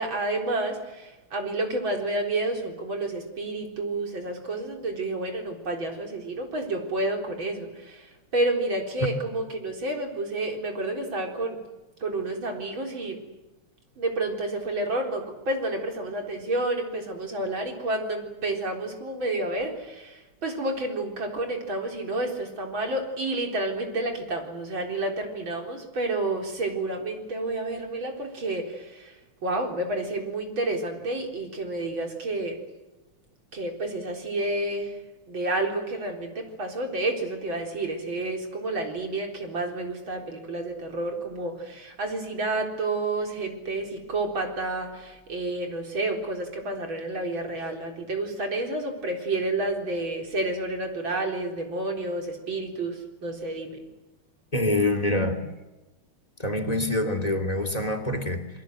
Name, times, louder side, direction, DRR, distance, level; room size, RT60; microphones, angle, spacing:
voice 1, 0.0-11.6 12.0-13.2 14.0-29.2 29.4-32.6 33.5-35.0 35.3-53.8, right 2 dB, 65° right, 2 dB, 4.7 m, -30 dB
voice 2, 54.5-55.4 56.4-58.4, left 1 dB, 15° left, 8 dB, 2.8 m, -25 dB
27.5 x 23.0 x 7.9 m, 1.1 s
omnidirectional pair, 2.3 m